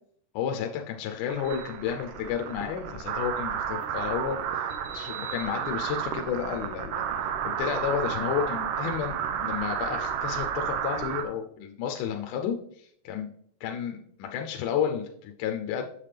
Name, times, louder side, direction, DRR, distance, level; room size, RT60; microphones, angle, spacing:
voice 1, 0.3-4.7 4.9-7.0 7.4-13.3 13.6-15.8, left 8 dB, 80° left, 3 dB, 2.1 m, -31 dB
sound 1, 1.3-11.2, right 8 dB, 80° right, 2.3 m, -32 dB
7.4 x 7.1 x 3.3 m, 0.65 s
omnidirectional pair, 3.7 m